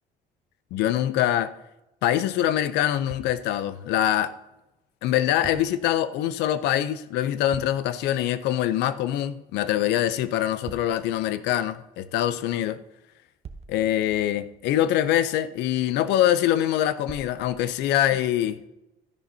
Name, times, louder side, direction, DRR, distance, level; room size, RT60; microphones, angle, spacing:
voice 1, 0.7-1.5 2.0-4.3 5.0-12.8 13.7-18.6, left 12 dB, 85° left, 0.6 m, -24 dB
sound 1, 3.1-3.9 5.4-6.0 7.5-8.1 10.7-11.3 13.4-14.8 17.1-17.9, right 6 dB, 40° right, 0.8 m, -45 dB
13.0 x 10.0 x 2.8 m
cardioid pair, 110°, 17 cm